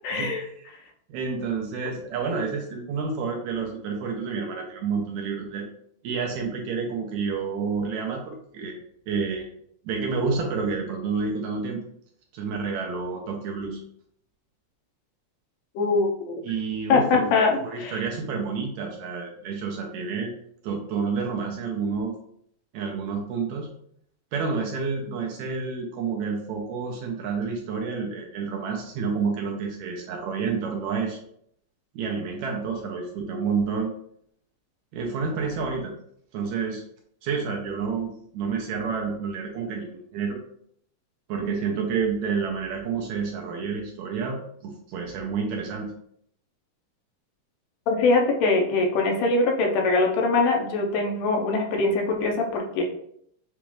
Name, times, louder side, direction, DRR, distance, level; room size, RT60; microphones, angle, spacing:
voice 1, 0.0-0.5 15.8-16.4 16.9-18.0 47.9-52.8, left 3 dB, 80° left, 1 dB, 2.3 m, -23 dB
voice 2, 1.1-5.7 6.0-8.8 9.1-9.5 9.9-11.8 12.3-13.8 16.4-17.2 17.6-20.3 20.6-22.1 22.7-23.7 24.3-31.2 32.0-33.9 34.9-35.9 36.3-36.8 37.2-40.4 41.3-45.9, right 5 dB, 75° right, 0 dB, 1.8 m, -29 dB
7.0 x 2.4 x 3.1 m, 0.69 s
omnidirectional pair, 3.7 m